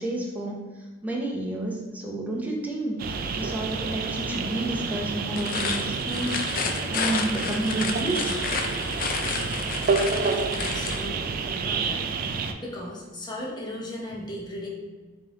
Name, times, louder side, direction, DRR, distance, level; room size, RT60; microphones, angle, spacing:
voice 1, 0.0-3.1 3.3-8.3, right 1 dB, 10° right, -2 dB, 0.7 m, -30 dB
sound 1, 3.0-12.5, right 4 dB, 50° right, 0.3 m, -29 dB
sound 2, 5.3-11.1, left 5 dB, 45° left, 0.4 m, -31 dB
voice 2, 10.5-12.1 12.6-14.7, left 1 dB, 25° left, -2 dB, 0.8 m, -37 dB
3.7 x 3.0 x 3.7 m, 1.3 s
head